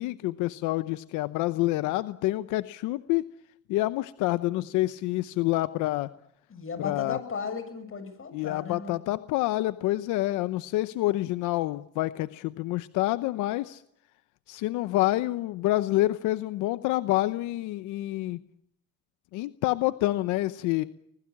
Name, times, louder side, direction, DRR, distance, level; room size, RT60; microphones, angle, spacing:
voice 1, 0.0-3.3 3.7-6.1 6.8-7.2 8.3-13.8 14.5-18.4 19.3-20.8, left 17 dB, 90° left, 14 dB, 0.9 m, -27 dB
voice 2, 6.5-9.0 20.7-20.9, left 5 dB, 45° left, 11 dB, 7.4 m, -36 dB
25.0 x 21.0 x 8.5 m, 0.76 s
cardioid pair, 90°, 30 cm